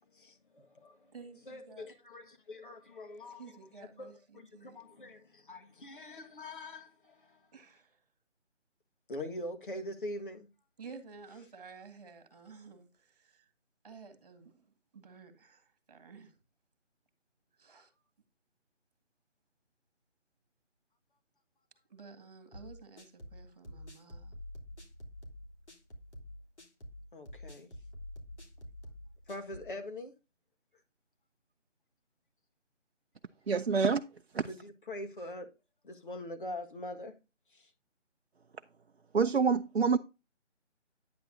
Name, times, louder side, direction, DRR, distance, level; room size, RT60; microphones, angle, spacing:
voice 1, 0.1-1.1 1.4-7.5 9.1-10.5 27.1-27.7 29.3-30.1 34.5-35.5 35.8-37.2 37.5-37.7, left 1 dB, 45° left, 1.7 m, -43 dB
voice 2, 1.1-1.9 3.4-4.8 7.5-8.0 10.8-13.5 13.8-14.6 14.9-16.3 17.6-17.9 21.9-24.4, right 5 dB, 35° right, 2.0 m, -52 dB
sound 1, 22.5-29.7, left 1 dB, 65° left, 3.2 m, -48 dB
voice 3, 33.5-34.0 34.3-34.4 39.1-40.0, right 5 dB, 60° right, 0.6 m, -26 dB
9.4 x 8.7 x 2.7 m
figure-of-eight pair, 165°, 36 cm